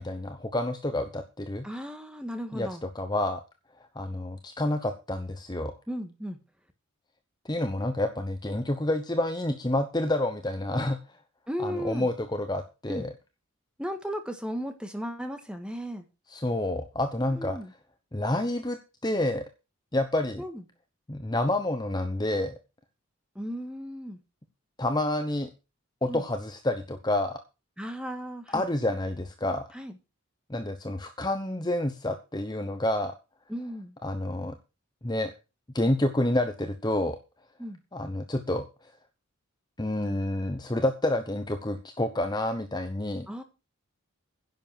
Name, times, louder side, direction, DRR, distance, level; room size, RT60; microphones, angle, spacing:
voice 1, 0.0-1.6 2.5-3.4 3.9-5.7 7.4-11.0 11.6-13.1 16.3-17.6 18.1-19.4 19.9-20.4 21.1-22.6 24.8-25.5 26.0-27.4 28.5-29.6 30.5-33.1 34.0-34.5 35.0-35.3 35.7-37.2 37.9-38.7 39.8-43.3, left 1 dB, 20° left, 7 dB, 1.0 m, -29 dB
voice 2, 1.6-2.8 5.9-6.4 11.5-12.1 12.9-13.1 13.8-16.1 17.4-17.7 20.4-20.6 23.4-24.2 26.1-26.2 27.8-28.7 29.7-29.9 33.5-33.9 37.6-37.8 43.3-43.4, equal, 5° right, 6 dB, 1.8 m, -35 dB
10.5 x 7.3 x 7.5 m, 0.30 s
head